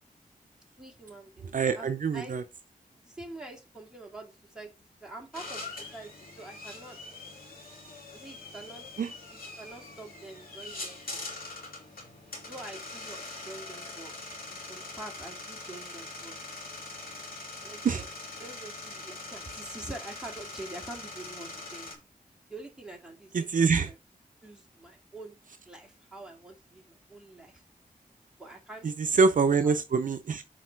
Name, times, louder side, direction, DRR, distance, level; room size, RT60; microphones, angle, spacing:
voice 1, 0.8-2.3 3.0-4.7 5.0-7.0 8.1-8.8 9.6-11.0 12.4-14.2 14.5-16.4 17.6-18.1 18.4-22.0 22.5-23.5 23.9-24.0 24.4-25.4 25.7-27.6 28.4-28.9 29.2-29.7, right 2 dB, 5° right, 2.3 m, -45 dB
voice 2, 1.5-2.4 9.0-9.1 17.8-18.0 23.3-23.9 28.8-30.4, right 5 dB, 65° right, 0.5 m, -25 dB
sound 1, 5.3-21.9, left 2 dB, 80° left, 2.7 m, -43 dB
6.4 x 4.5 x 4.4 m
wide cardioid pair, 115°, 15 cm